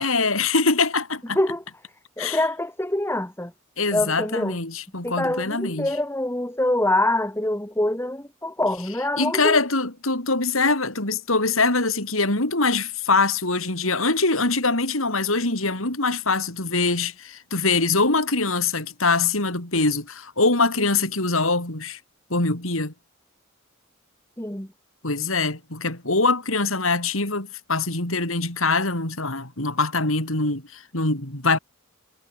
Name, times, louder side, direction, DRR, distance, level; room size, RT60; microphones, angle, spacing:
voice 1, 0.0-1.4 2.2-2.4 3.8-6.0 9.2-22.0 22.3-22.9 25.0-31.6, left 3 dB, 75° left, 6.2 m, -23 dB
voice 2, 2.2-3.5 3.9-4.6 5.0-9.6 24.4-24.7, left 1 dB, 10° left, 6.2 m, -25 dB
head